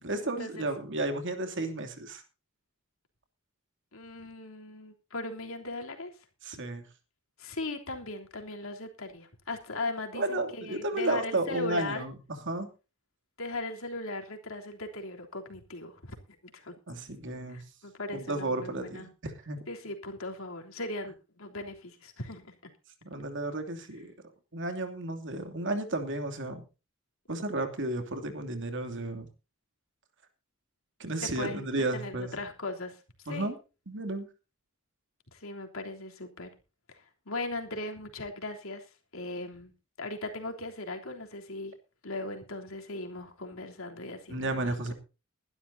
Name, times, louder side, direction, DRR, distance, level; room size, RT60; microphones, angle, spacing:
voice 1, 0.0-2.2 6.4-6.9 10.1-12.7 16.9-17.7 18.1-19.6 23.0-24.1 24.5-26.6 27.3-29.3 31.0-32.4 33.3-33.6 33.9-34.3 44.3-44.9, right 2 dB, 60° right, 6 dB, 2.8 m, -33 dB
voice 2, 3.9-6.1 7.4-12.1 13.4-16.2 16.5-16.7 17.5-19.1 19.7-22.6 31.4-31.7 31.9-33.0 33.3-33.5 35.3-36.5 36.9-38.9 39.1-39.7 40.0-41.7 42.0-44.7, left 2 dB, 70° left, 2 dB, 3.3 m, -38 dB
21.0 x 12.0 x 2.8 m, 0.31 s
head